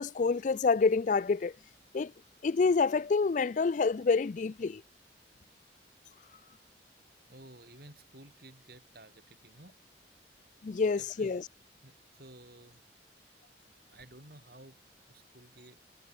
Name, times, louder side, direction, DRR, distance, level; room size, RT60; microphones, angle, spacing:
voice 1, 0.0-1.5 1.9-2.1 2.4-4.8 10.6-11.4, left 4 dB, 45° left, 0.4 m, -27 dB
voice 2, 7.3-9.8 10.8-11.3 11.8-12.8 13.2-13.3 13.6-15.8, right 1 dB, 55° right, 7.0 m, -54 dB
head